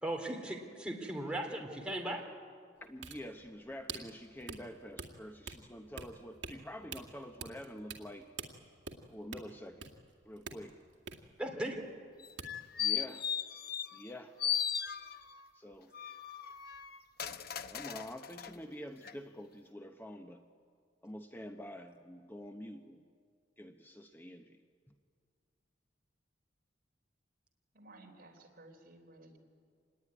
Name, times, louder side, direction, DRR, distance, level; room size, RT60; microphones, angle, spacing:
voice 1, 0.0-2.2 11.4-11.8, right 1 dB, 5° right, 1 dB, 3.0 m, -37 dB
voice 2, 2.8-8.3 9.1-9.9 10.2-10.8 12.8-13.3 13.9-14.4 15.5-15.9 16.4-16.5 17.7-20.4 21.0-23.0 23.6-24.6, equal, 10° left, 5 dB, 0.9 m, -47 dB
sound 1, 2.8-12.1 12.4-12.5, right 5 dB, 70° right, 2.2 m, -47 dB
sound 2, 12.2-14.1 14.4-15.4 15.9-18.5 19.0-19.1, left 9 dB, 55° left, 0.9 m, -37 dB
voice 3, 27.7-29.4, right 2 dB, 55° right, 2 dB, 3.6 m, -56 dB
26.0 x 20.0 x 9.8 m, 2.1 s
head